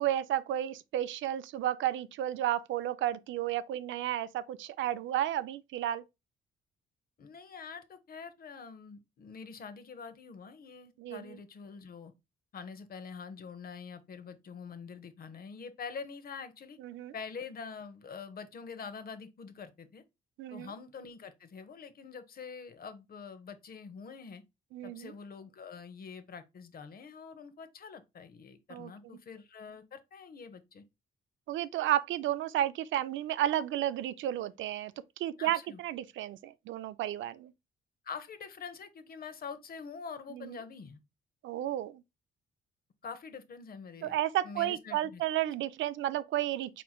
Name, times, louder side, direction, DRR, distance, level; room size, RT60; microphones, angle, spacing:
voice 1, 0.0-6.0 11.0-11.4 16.8-17.1 20.4-20.7 24.7-25.1 28.7-29.2 31.5-37.5 40.3-40.6 41.4-42.0 44.0-46.8, right 12 dB, 75° right, 0.4 m, -32 dB
voice 2, 7.2-12.1 12.5-16.8 17.1-20.0 20.5-24.4 24.8-30.8 35.4-35.8 38.0-41.0 43.0-44.2 44.4-45.2, left 5 dB, 50° left, 0.8 m, -45 dB
4.3 x 4.3 x 2.3 m
cardioid pair, 90°, 20 cm